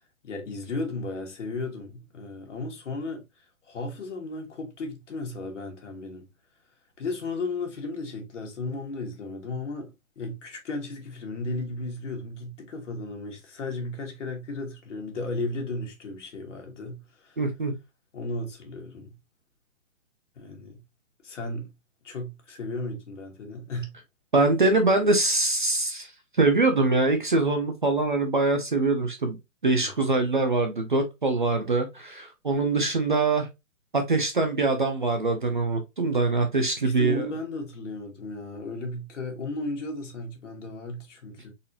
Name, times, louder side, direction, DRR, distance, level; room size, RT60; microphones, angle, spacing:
voice 1, 0.2-3.2 3.7-6.3 7.0-17.4 18.1-19.1 20.3-20.8 21.2-21.7 22.0-23.9 29.8-30.1 36.8-41.5, left 2 dB, 60° left, 1.5 m, -35 dB
voice 2, 17.4-17.7 24.3-26.1 26.4-29.4 29.6-33.5 33.9-37.3, right 3 dB, 40° right, 0.4 m, -23 dB
4.0 x 2.5 x 2.7 m
hypercardioid pair, 170°, 41 cm